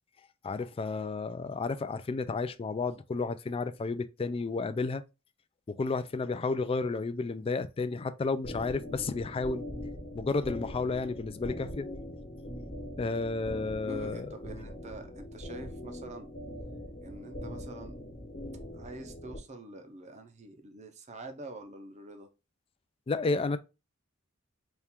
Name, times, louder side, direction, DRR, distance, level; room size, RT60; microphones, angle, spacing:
voice 1, 0.4-5.0 5.8-9.6 10.1-11.9 13.0-14.3 23.1-23.6, left 3 dB, 25° left, 0.3 m, -32 dB
sound 1, 8.4-19.4, left 1 dB, 50° left, 1.2 m, -42 dB
voice 2, 8.9-9.2 10.9-11.2 13.9-16.3 17.0-18.0 18.7-22.3, right 2 dB, 35° right, 0.6 m, -46 dB
4.3 x 2.4 x 3.5 m
head